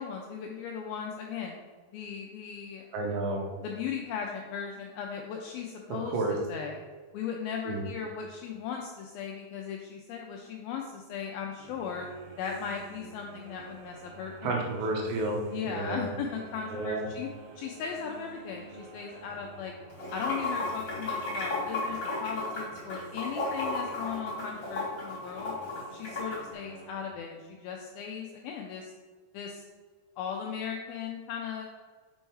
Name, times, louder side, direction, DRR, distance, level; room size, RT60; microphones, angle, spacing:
voice 1, 0.0-1.6 1.9-2.9 3.6-6.2 6.5-6.8 7.1-12.1 12.4-14.6 15.5-17.3 17.6-19.7 20.1-25.6 25.9-28.9 29.3-29.6 30.2-31.7, left 7 dB, 85° left, 1 dB, 2.1 m, -37 dB
voice 2, 2.9-3.4 6.1-6.3 7.7-7.8 14.4-15.4 15.6-16.2 16.7-17.1, right 2 dB, 90° right, 0 dB, 3.5 m, -31 dB
sound 1, 11.6-27.1, right 2 dB, 70° right, 2.4 m, -49 dB
Water / Sink (filling or washing), 19.9-26.4, left 2 dB, 35° left, 1.5 m, -33 dB
6.7 x 5.4 x 4.6 m, 1.5 s
omnidirectional pair, 4.9 m